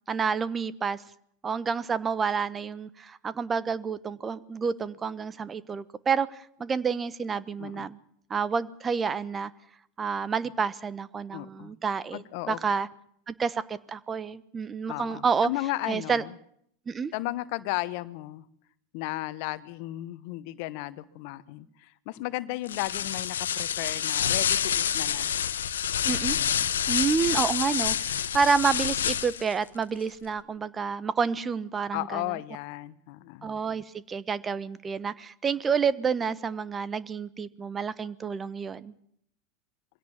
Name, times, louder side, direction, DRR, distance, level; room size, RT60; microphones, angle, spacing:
voice 1, 0.1-1.0 1.4-8.0 8.3-9.5 10.0-12.9 13.3-15.5 15.9-16.2 16.9-17.1 26.0-26.4 26.9-32.2 33.4-38.9, right 5 dB, 25° right, 19 dB, 1.1 m, -29 dB
voice 2, 11.3-11.7 12.1-12.6 14.9-16.3 17.1-18.4 18.9-25.3 26.3-26.7 31.9-33.5, left 18 dB, 60° left, 15 dB, 1.2 m, -35 dB
sound 1, 22.7-29.5, left 9 dB, 80° left, 1.1 m, -28 dB
23.0 x 17.0 x 7.3 m, 0.68 s
hypercardioid pair, 90°, 0 cm